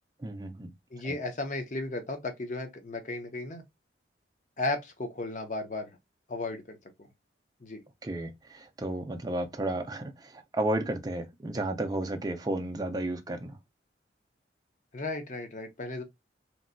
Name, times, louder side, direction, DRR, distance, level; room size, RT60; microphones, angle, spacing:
voice 1, 0.2-0.7 1.0-1.2 8.0-13.6, right 1 dB, 20° right, 0.4 m, -33 dB
voice 2, 0.9-3.6 4.6-5.9 6.3-7.1 7.6-7.8 14.9-16.0, left 2 dB, 40° left, 0.6 m, -35 dB
3.0 x 2.6 x 2.5 m
head